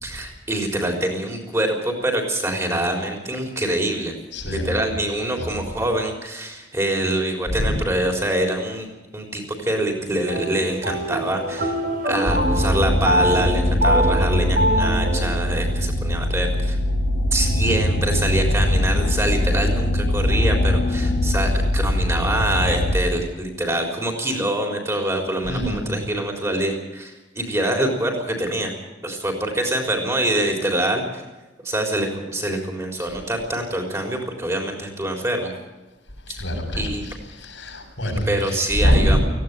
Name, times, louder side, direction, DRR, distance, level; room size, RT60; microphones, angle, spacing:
voice 1, 0.0-4.1 4.5-8.9 9.1-11.8 12.0-16.8 17.3-28.7 29.0-31.2 31.6-35.5 36.3-36.4 36.7-37.0 38.0-39.2, right 1 dB, 15° right, 2 dB, 3.9 m, -25 dB
voice 2, 4.3-4.9 5.4-5.7 7.5-7.8 25.4-25.9 33.0-33.1 36.2-39.2, equal, 85° left, 0 dB, 7.0 m, -24 dB
sound 1, 10.3-15.3, right 1 dB, 45° right, 2.8 m, -23 dB
sound 2, 12.3-23.0, left 1 dB, 65° left, 1.9 m, -21 dB
18.0 x 16.0 x 9.1 m, 1.1 s
head